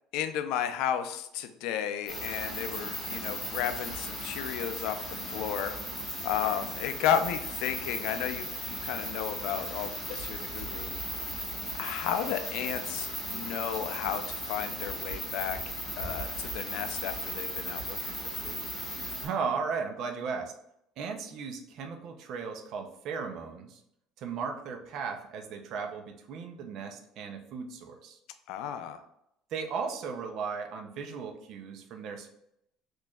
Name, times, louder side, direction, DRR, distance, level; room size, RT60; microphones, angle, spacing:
voice 1, 0.1-5.0 5.3-5.7 6.2-10.9 11.8-15.6 16.0-18.1 18.4-18.6 28.5-29.0, left 9 dB, 65° left, 8 dB, 0.4 m, -33 dB
sound 1, 2.1-19.3, equal, 5° left, 1.3 m, -37 dB
voice 2, 19.2-20.5 21.0-23.8 24.2-28.2 29.5-32.3, right 5 dB, 50° right, 4 dB, 0.4 m, -36 dB
4.2 x 3.1 x 2.3 m, 0.77 s
cardioid pair, 160°, 0 cm